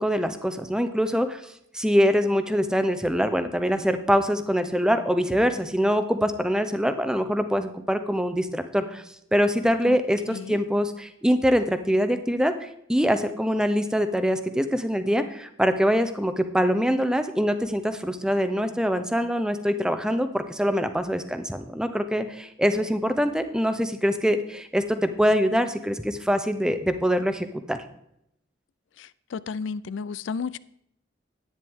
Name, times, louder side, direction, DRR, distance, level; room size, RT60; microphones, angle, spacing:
voice 1, 0.0-9.0 9.3-27.8, equal, 5° right, 0.6 m, -24 dB
voice 2, 10.3-10.6 29.0-30.6, left 5 dB, 75° left, 0.4 m, -33 dB
10.5 x 9.5 x 3.6 m
head